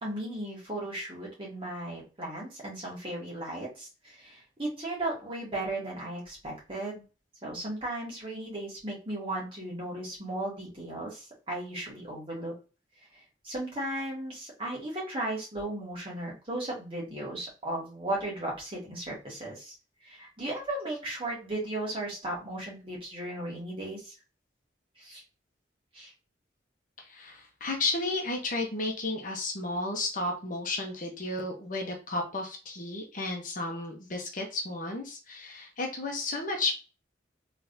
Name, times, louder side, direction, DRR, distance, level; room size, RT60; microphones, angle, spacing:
voice 1, 0.0-7.0 7.4-12.6 13.1-19.7 20.0-24.1 25.0-25.2 25.9-26.1, right 1 dB, 30° right, -4 dB, 1.9 m, -36 dB
voice 2, 27.0-36.7, left 2 dB, 45° left, 1 dB, 0.9 m, -33 dB
3.8 x 3.4 x 2.7 m, 0.32 s
head